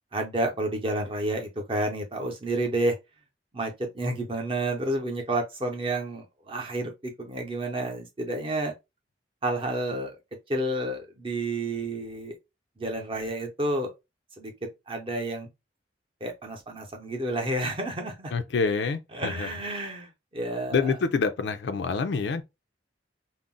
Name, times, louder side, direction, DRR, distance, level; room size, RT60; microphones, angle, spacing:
voice 1, 0.1-3.0 3.5-8.7 9.4-10.2 10.5-12.4 12.8-13.9 14.4-15.5 16.2-18.3 19.1-20.8, right 1 dB, 30° right, 0.7 m, -30 dB
voice 2, 18.3-19.5 20.7-22.4, left 4 dB, 65° left, 0.4 m, -27 dB
2.4 x 2.0 x 3.7 m
head